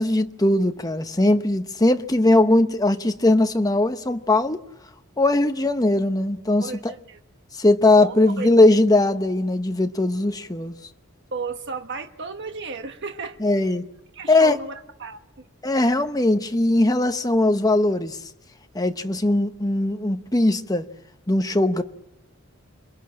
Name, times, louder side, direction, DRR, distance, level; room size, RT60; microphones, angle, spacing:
voice 1, 0.0-4.6 5.2-6.9 7.6-10.7 13.4-13.8 14.3-14.6 15.6-18.2 18.7-20.8 21.3-21.8, left 2 dB, 20° left, 1.0 m, -20 dB
voice 2, 6.6-7.2 7.9-8.5 11.3-13.7 14.1-15.5, right 3 dB, 60° right, 1.3 m, -34 dB
27.5 x 22.0 x 8.8 m
head